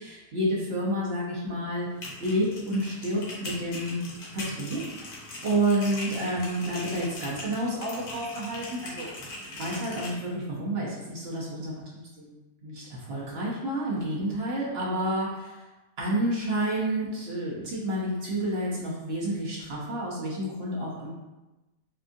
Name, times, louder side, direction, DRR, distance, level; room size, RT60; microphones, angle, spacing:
voice 1, 0.0-1.9 2.2-4.0 4.3-5.1 5.4-11.7 12.3-15.6 16.0-21.1, right 1 dB, 50° right, -6 dB, 0.8 m, -30 dB
sound 1, 1.8-10.1, left 2 dB, 70° left, 1.3 m, -40 dB
4.4 x 2.4 x 2.5 m, 1.1 s
omnidirectional pair, 1.7 m